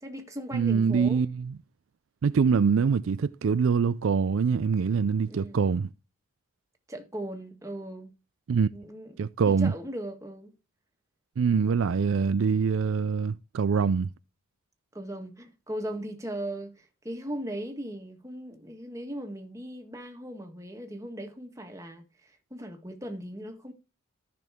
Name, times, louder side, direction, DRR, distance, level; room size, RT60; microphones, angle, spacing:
voice 1, 0.0-1.3 5.3-5.6 6.9-8.1 8.7-9.1 9.5-10.5 14.9-23.7, right 1 dB, 15° right, 1.5 m, -38 dB
voice 2, 0.5-1.6 2.2-5.9 8.5-8.7 9.2-9.7 11.4-14.1, right 6 dB, 70° right, 0.4 m, -24 dB
14.0 x 6.1 x 3.5 m
head